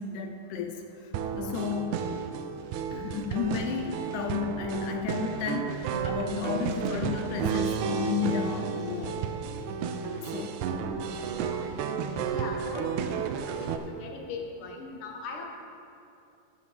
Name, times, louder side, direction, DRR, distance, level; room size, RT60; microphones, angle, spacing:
voice 1, 0.0-2.0 2.9-9.2 10.2-10.6, left 6 dB, 80° left, 5 dB, 1.8 m, -33 dB
sound 1, 1.1-13.8, right 6 dB, 85° right, 1.7 m, -32 dB
voice 2, 12.3-13.1 13.4-15.4, left 4 dB, 60° left, 1 dB, 1.5 m, -39 dB
13.5 x 11.0 x 3.4 m, 2.7 s
omnidirectional pair, 4.0 m